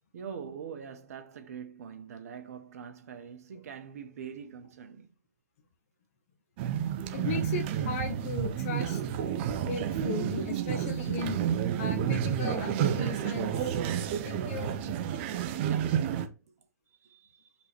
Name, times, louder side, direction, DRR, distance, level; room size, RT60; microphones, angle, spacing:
voice 1, 0.1-5.1 15.6-16.4 17.0-17.6, right 7 dB, 60° right, 1.4 m, -44 dB
sound 1, 6.6-16.3, right 9 dB, 40° right, 0.8 m, -30 dB
voice 2, 7.1-9.0 9.6-11.4 11.8-13.8 14.2-14.8, left 5 dB, 50° left, 1.5 m, -36 dB
5.4 x 4.0 x 4.6 m
hypercardioid pair, 135°, 9 cm